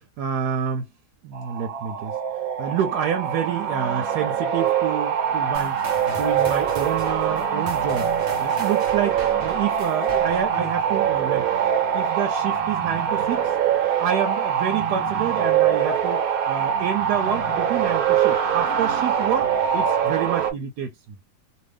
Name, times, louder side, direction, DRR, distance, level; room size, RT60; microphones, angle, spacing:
voice 1, 0.2-0.9 1.2-2.1 2.6-5.7 6.2-11.4 11.9-13.5 14.0-20.9, right 8 dB, 90° right, 1.2 m, -28 dB
sound 1, 1.3-20.5, right 8 dB, 65° right, 1.2 m, -23 dB
sound 2, 5.5-10.6, right 2 dB, 40° right, 0.7 m, -39 dB
2.6 x 2.6 x 3.3 m
omnidirectional pair, 1.7 m